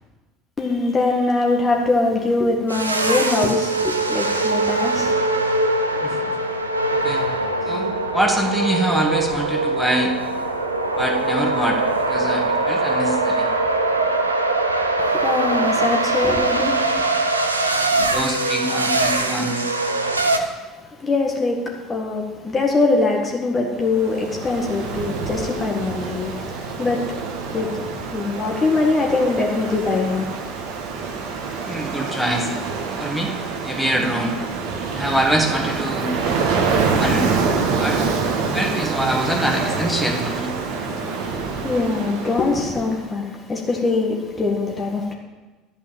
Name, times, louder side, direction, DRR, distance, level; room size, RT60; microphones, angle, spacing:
voice 1, 0.6-5.1 15.0-16.9 20.2-20.5 21.0-27.1 27.5-30.3 40.9-41.3 41.6-45.1, left 3 dB, 25° left, 0 dB, 1.7 m, -22 dB
sound 1, 2.7-20.4, right 2 dB, 85° right, 0.7 m, -22 dB
voice 2, 6.0-6.3 6.9-7.2 7.6-7.9 8.1-10.1 11.0-13.5 17.7-19.8 31.6-32.5 33.0-33.3 33.6-34.4 34.9-36.1 37.0-37.3 37.8-38.0 38.5-40.5, right 1 dB, ahead, 0 dB, 2.0 m, -24 dB
Ocean, 23.8-42.9, right 4 dB, 55° right, 1.4 m, -26 dB
11.5 x 5.5 x 8.9 m, 1.2 s
figure-of-eight pair, 65°, 0 cm